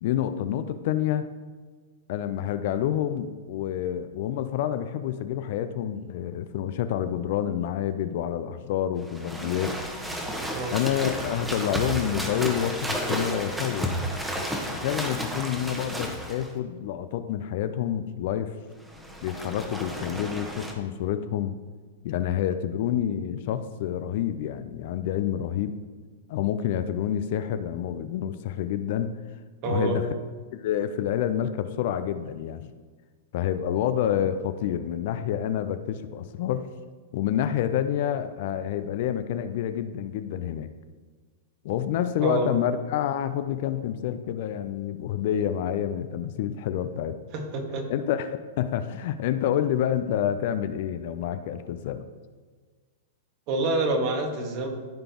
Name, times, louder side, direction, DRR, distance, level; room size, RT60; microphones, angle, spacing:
voice 1, 0.0-1.3 2.1-9.8 10.7-14.0 14.7-18.5 19.2-21.5 22.0-25.7 26.3-29.1 29.6-30.2 30.5-32.7 33.3-36.7 37.1-40.7 41.6-47.2 47.9-52.0, left 10 dB, 55° left, 11 dB, 0.5 m, -28 dB
sound 1, 9.0-16.5 18.8-20.7, equal, 5° right, 1.2 m, -32 dB
voice 2, 29.6-30.0 42.2-42.5 47.3-47.9 53.5-54.7, right 2 dB, 45° right, 2 dB, 1.8 m, -27 dB
13.5 x 5.2 x 3.0 m, 1.5 s
hypercardioid pair, 105°, 0 cm